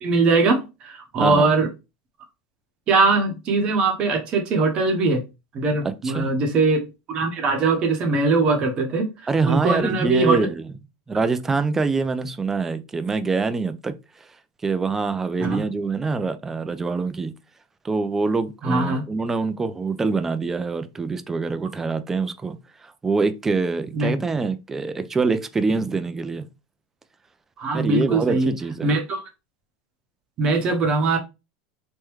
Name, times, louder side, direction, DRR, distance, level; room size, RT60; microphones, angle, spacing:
voice 1, 0.0-1.7 2.9-5.2 5.5-6.8 7.1-9.1 9.4-10.4 15.4-15.6 18.6-19.0 23.9-24.2 27.6-28.5 28.8-29.2 30.4-31.2, right 3 dB, 40° right, 0.8 m, -21 dB
voice 2, 1.2-1.5 5.8-6.3 9.3-10.6 11.1-13.9 14.6-17.3 17.8-22.5 22.8-26.4 27.7-28.9, right 4 dB, 15° right, 0.4 m, -25 dB
3.4 x 2.1 x 3.0 m
supercardioid pair, 125°, 3 cm